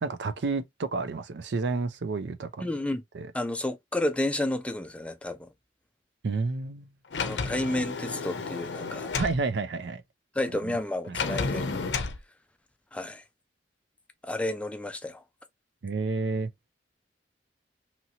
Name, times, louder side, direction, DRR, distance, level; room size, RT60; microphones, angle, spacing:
voice 1, 0.0-2.7 3.1-3.3 6.2-6.9 9.2-10.0 11.1-11.2 15.8-16.5, right 3 dB, 75° right, 0.5 m, -30 dB
voice 2, 2.6-3.0 3.3-5.5 7.2-9.1 10.3-11.7 12.9-13.2 14.2-15.2, left 1 dB, 5° left, 0.3 m, -31 dB
Sliding door, 7.1-9.4 11.1-12.2, left 4 dB, 75° left, 0.5 m, -31 dB
2.8 x 2.8 x 2.7 m
head